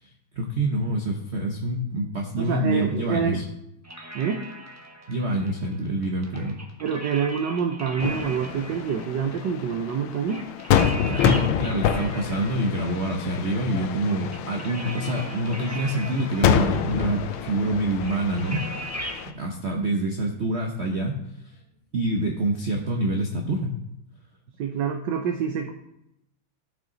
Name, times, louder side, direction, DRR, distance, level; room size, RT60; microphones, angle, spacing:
voice 1, 0.0-3.4 5.1-6.6 11.1-18.7 19.2-21.2 21.9-23.8, right 1 dB, 50° right, 1 dB, 0.8 m, -26 dB
voice 2, 2.4-3.4 4.1-4.4 6.8-10.4 24.6-25.7, right 7 dB, 70° right, 4 dB, 1.2 m, -26 dB
sound 1, 3.8-19.3, right 1 dB, 15° right, 0.7 m, -40 dB
sound 2, 8.0-19.3, left 9 dB, 85° left, 1.5 m, -27 dB
13.5 x 6.0 x 3.9 m, 0.82 s
omnidirectional pair, 2.2 m